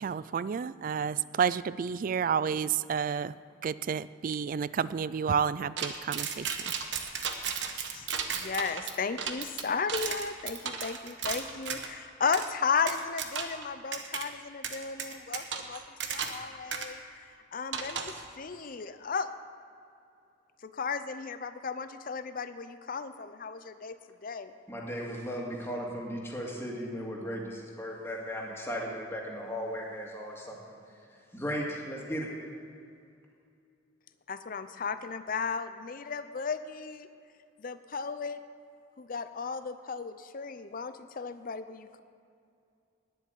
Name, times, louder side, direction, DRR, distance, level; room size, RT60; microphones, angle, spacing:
voice 1, 0.0-3.3 3.6-6.7 7.8-7.9, right 7 dB, 45° right, 17 dB, 0.3 m, -30 dB
sound 1, 5.8-11.9 12.3-12.5 12.9-13.6 13.9-14.2 14.6-16.4 16.7-16.9 17.7-18.2, right 7 dB, 70° right, 1.2 m, -34 dB
voice 2, 8.3-15.8 16.1-19.3 20.6-24.0 24.2-24.6 34.3-37.1 37.6-38.4 39.0-42.0, left 5 dB, 50° left, 11 dB, 0.6 m, -35 dB
voice 3, 24.7-31.0 31.3-32.3, equal, 15° left, -2 dB, 2.1 m, -36 dB
10.0 x 7.9 x 9.8 m, 2.5 s
head